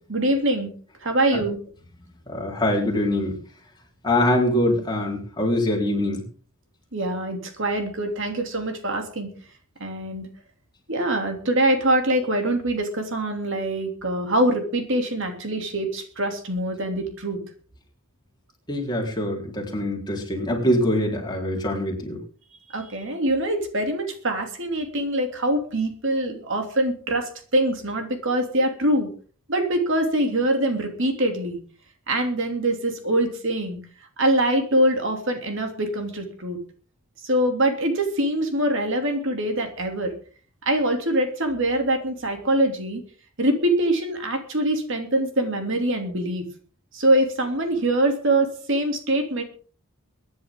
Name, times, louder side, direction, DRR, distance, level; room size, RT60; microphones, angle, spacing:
voice 1, 0.1-0.7 1.0-1.6 6.9-9.3 9.8-10.3 10.9-17.4 22.7-29.1 29.5-31.6 32.1-33.8 34.2-36.6 37.2-40.1 40.6-43.0 43.4-46.4 46.9-49.4, right 1 dB, 60° right, 4 dB, 2.9 m, -24 dB
voice 2, 2.3-3.4 4.0-6.2 18.7-22.2, left 1 dB, 20° left, -1 dB, 4.1 m, -23 dB
23.5 x 10.5 x 3.8 m, 0.42 s
head